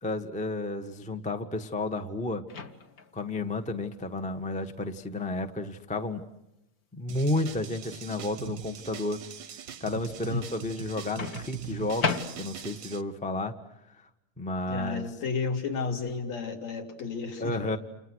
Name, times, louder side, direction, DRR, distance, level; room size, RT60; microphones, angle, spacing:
voice 1, 0.0-2.4 3.1-6.2 6.9-9.2 9.8-13.5 14.4-15.1 17.4-17.8, left 2 dB, 5° left, 6 dB, 0.5 m, -32 dB
Microwave oven, 2.5-3.2 5.2-5.4 11.2-12.8, left 4 dB, 40° left, 1.5 m, -34 dB
sound 1, 7.1-13.0, right 9 dB, 55° right, 1.3 m, -41 dB
voice 2, 14.7-17.8, left 4 dB, 65° left, 2 dB, 4.4 m, -32 dB
30.0 x 29.5 x 6.4 m, 0.90 s
omnidirectional pair, 3.3 m